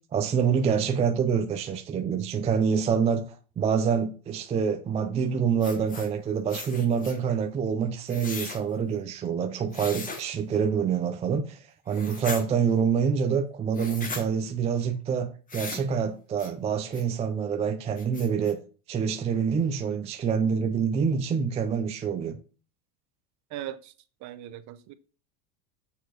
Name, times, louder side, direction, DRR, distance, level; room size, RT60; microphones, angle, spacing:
voice 1, 0.1-18.6 18.9-22.4, right 6 dB, 15° right, 0.3 m, -26 dB
sound 1, 5.6-6.1 6.5-7.2 8.1-8.6 9.7-10.2 11.9-12.4 13.7-14.2 15.5-15.9 16.4-16.5 16.9-17.0 17.5-17.6 18.0-18.5, left 4 dB, 15° left, 1.2 m, -38 dB
voice 2, 23.5-23.9 24.2-24.9, right 12 dB, 40° right, 0.8 m, -39 dB
6.8 x 4.6 x 6.2 m
supercardioid pair, 130°, 47 cm